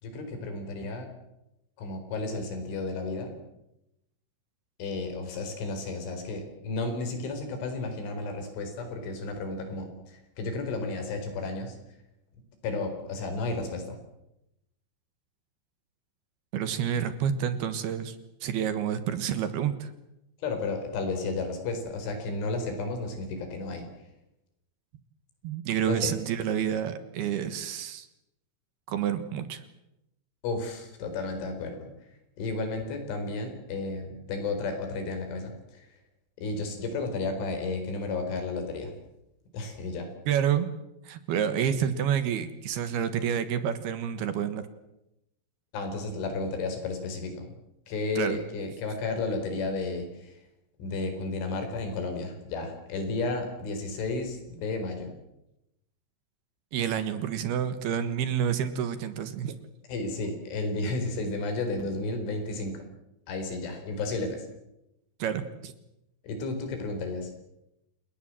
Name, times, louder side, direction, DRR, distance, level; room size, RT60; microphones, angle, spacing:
voice 1, 0.0-1.1 1.8-3.4 4.8-11.8 12.6-14.0 20.4-23.9 25.9-26.1 30.4-31.9 32.4-35.9 36.4-38.9 39.5-40.1 45.7-47.5 47.9-50.4 50.8-55.1 59.9-62.8 63.3-64.5 66.2-67.3, left 3 dB, 90° left, 6 dB, 6.8 m, -32 dB
voice 2, 16.5-19.9 25.4-28.1 28.9-29.6 40.3-40.7 41.0-44.7 48.2-48.4 56.7-59.6 65.2-65.7, right 9 dB, 65° right, 11 dB, 3.1 m, -29 dB
29.0 x 19.0 x 7.7 m, 0.88 s
omnidirectional pair, 5.3 m